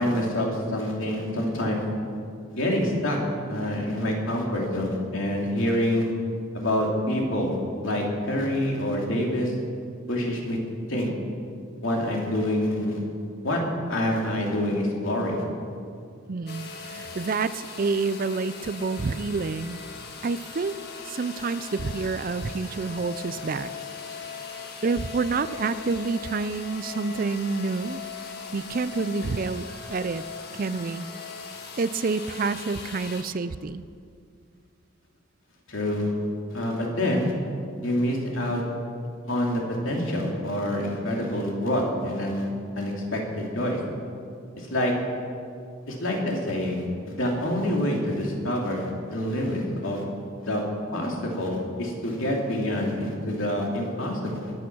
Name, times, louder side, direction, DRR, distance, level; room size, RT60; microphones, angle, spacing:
voice 1, 0.0-1.8 2.5-3.2 3.5-6.1 6.5-7.5 7.8-9.5 10.1-10.6 10.9-11.1 11.8-13.0 13.4-13.6 13.9-15.4 35.7-36.1 36.5-37.3 37.8-38.6 39.3-42.5 42.8-43.8 44.6-44.9 45.9-50.0 50.4-50.6 50.9-54.5, left 1 dB, 70° left, -1 dB, 2.9 m, -26 dB
voice 2, 16.3-19.8 20.2-20.8 21.0-23.7 24.8-28.0 28.5-30.2 30.5-31.1 31.8-33.8, right 4 dB, 40° right, 14 dB, 0.4 m, -28 dB
sound 1, 16.5-33.2, left 5 dB, 50° left, 1.6 m, -39 dB
21.5 x 8.6 x 6.2 m, 2.3 s
head